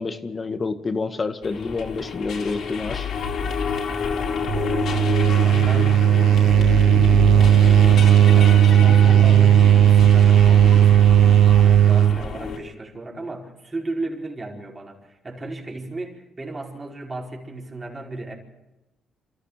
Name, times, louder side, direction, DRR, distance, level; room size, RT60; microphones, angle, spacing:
voice 1, 0.0-3.1, left 4 dB, 35° left, 9 dB, 1.9 m, -28 dB
sound 1, 1.4-12.6, left 5 dB, 70° left, 4.2 m, -28 dB
voice 2, 4.5-18.3, right 2 dB, 25° right, -1 dB, 4.9 m, -35 dB
sound 2, 4.5-12.2, right 11 dB, 75° right, 0.9 m, -15 dB
27.5 x 14.5 x 6.8 m, 0.97 s
cardioid pair, 90°, 0 cm